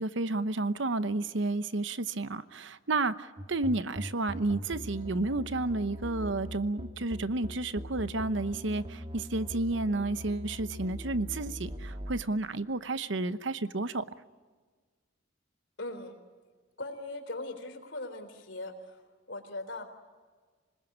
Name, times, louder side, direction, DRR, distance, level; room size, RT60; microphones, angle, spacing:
voice 1, 0.0-14.0, right 2 dB, 65° right, 13 dB, 0.9 m, -31 dB
sound 1, 3.4-12.2, equal, 30° right, 2.0 m, -41 dB
voice 2, 15.8-16.2 16.8-18.7 19.3-19.8, left 2 dB, 60° left, 7 dB, 3.8 m, -39 dB
26.5 x 20.5 x 9.8 m, 1.4 s
head